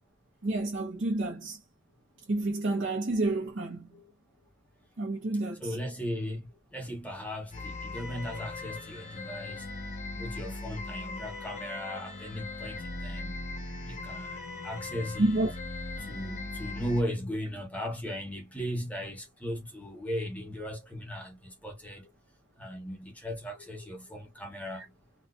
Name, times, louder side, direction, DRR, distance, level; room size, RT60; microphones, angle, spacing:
voice 1, 0.4-1.6 2.3-4.0 5.0-5.8 15.2-15.5, right 2 dB, 65° right, 0.7 m, -29 dB
voice 2, 5.6-9.7 10.1-13.3 13.8-15.4 16.0-22.1 22.6-24.9, equal, 5° left, 0.7 m, -37 dB
sound 1, 7.5-17.0, left 2 dB, 35° left, 1.0 m, -39 dB
4.3 x 2.2 x 2.3 m
head